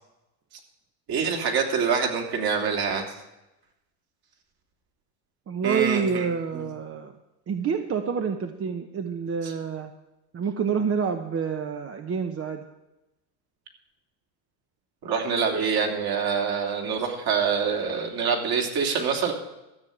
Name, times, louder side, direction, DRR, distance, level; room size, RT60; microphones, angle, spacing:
voice 1, 1.1-3.0 5.6-6.3 6.5-6.6 9.4-9.5 15.0-19.3, right 6 dB, 50° right, 2 dB, 3.0 m, -25 dB
voice 2, 5.5-7.1 7.5-9.9 10.3-12.6, right 6 dB, 30° right, 6 dB, 1.0 m, -28 dB
13.5 x 6.7 x 8.5 m, 0.96 s
supercardioid pair, 100°, 48 cm